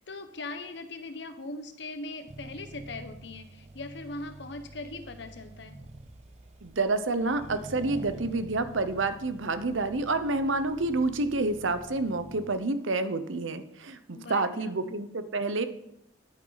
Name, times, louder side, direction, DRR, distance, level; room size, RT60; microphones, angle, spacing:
voice 1, 0.0-5.8 14.1-14.8, left 2 dB, 65° left, 9 dB, 1.0 m, -40 dB
Accelerating revving vroom, 2.3-12.7, right 1 dB, 35° right, 0.8 m, -47 dB
voice 2, 6.6-15.7, right 3 dB, 80° right, 11 dB, 0.9 m, -28 dB
11.0 x 8.8 x 4.1 m, 0.77 s
head